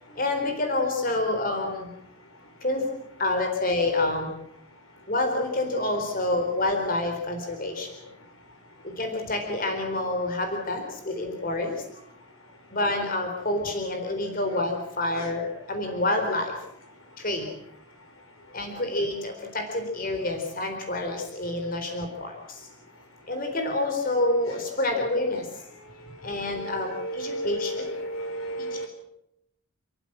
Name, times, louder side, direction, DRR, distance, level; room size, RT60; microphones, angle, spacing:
voice 1, 0.1-1.9 2.6-2.9 3.2-4.3 5.1-8.0 8.8-11.9 12.7-16.6 17.2-17.5 18.5-22.7 23.3-25.5 26.2-27.9 28.7-28.9, left 2 dB, 40° left, 4 dB, 4.1 m, -28 dB
voice 2, 26.0-28.9, equal, 70° left, 5 dB, 5.3 m, -34 dB
29.5 x 15.0 x 7.5 m, 0.79 s
head